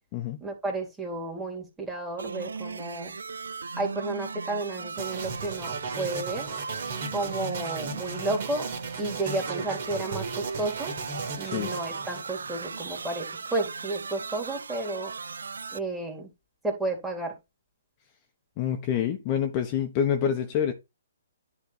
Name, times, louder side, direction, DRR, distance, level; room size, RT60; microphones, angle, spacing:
voice 1, 0.4-3.2 3.8-6.5 7.1-8.7 9.0-10.9 11.4-15.1 15.7-16.3 16.6-17.4 20.2-20.3, right 2 dB, 10° right, 2.5 m, -32 dB
sound 1, 2.2-15.8, right 5 dB, 75° right, 0.3 m, -38 dB
sound 2, 5.0-13.1, right 4 dB, 50° right, 2.6 m, -36 dB
voice 2, 18.6-20.7, left 9 dB, 35° left, 1.1 m, -27 dB
10.5 x 3.5 x 4.4 m
figure-of-eight pair, 135°, 0 cm